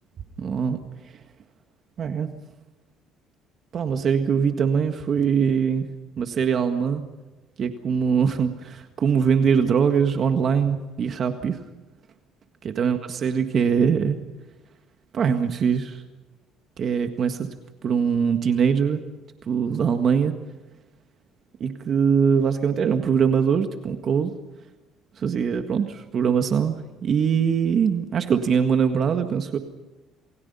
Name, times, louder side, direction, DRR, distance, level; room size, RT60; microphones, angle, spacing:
voice 1, 0.4-0.8 2.0-2.3 3.7-5.9 6.2-7.0 7.6-11.6 12.6-14.2 15.1-16.0 16.8-17.5 17.8-19.0 19.5-20.3 21.6-24.3 25.2-26.7 27.0-29.6, right 6 dB, 45° right, 7 dB, 1.7 m, -22 dB
28.5 x 21.5 x 5.6 m, 1.1 s
cardioid pair, 135°, 0 cm